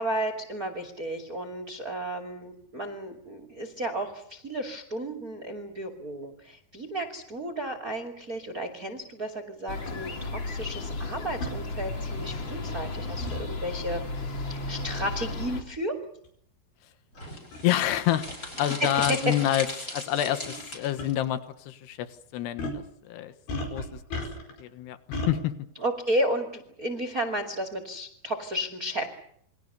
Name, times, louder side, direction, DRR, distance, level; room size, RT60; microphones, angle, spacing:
voice 1, 0.0-16.0 19.1-19.2 25.8-29.1, right 1 dB, 25° right, 8 dB, 2.1 m, -33 dB
sound 1, 9.7-15.6, left 2 dB, 35° left, 2.4 m, -34 dB
sound 2, 9.9-10.0 11.4-11.6 13.2-13.4 15.2-15.4 16.2-16.3 17.2-17.3 17.5-17.7 19.0-19.1 20.4-20.7 21.0-21.1 22.6-22.8 23.5-24.6 25.1-25.3, left 1 dB, 65° left, 6.8 m, -34 dB
sound 3, 17.2-21.1, left 1 dB, 20° left, 6.0 m, -38 dB
voice 2, 17.6-18.3 18.6-22.7 23.0-24.2 24.6-25.5, left 13 dB, 80° left, 10 dB, 3.5 m, -28 dB
29.0 x 23.0 x 6.9 m, 0.67 s
omnidirectional pair, 4.7 m